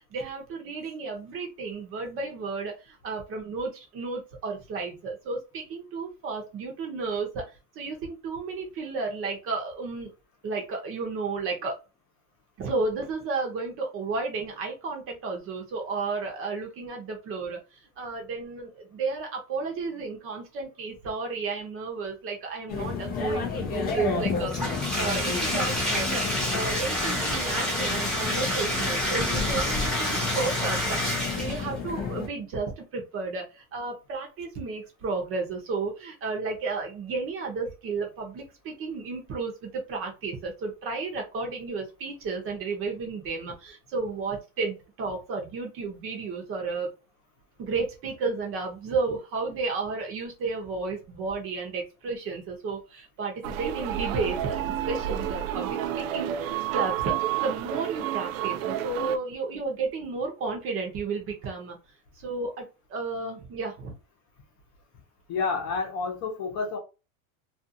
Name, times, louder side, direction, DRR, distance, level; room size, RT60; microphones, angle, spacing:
voice 1, 0.0-7.4 7.8-10.1 10.4-11.8 12.6-46.9 47.6-57.2 57.4-61.8 62.2-63.9, right 4 dB, 30° right, 1 dB, 0.7 m, -33 dB
sound 1, 22.7-32.3, left 5 dB, 25° left, 0.4 m, -31 dB
Bathtub (filling or washing), 24.5-31.7, equal, ahead, 0.8 m, -29 dB
sound 2, 53.4-59.2, right 11 dB, 80° right, 0.5 m, -30 dB
voice 2, 65.3-66.8, left 4 dB, 40° left, 2 dB, 0.8 m, -29 dB
2.5 x 2.4 x 2.6 m, 0.29 s
supercardioid pair, 155°, 42 cm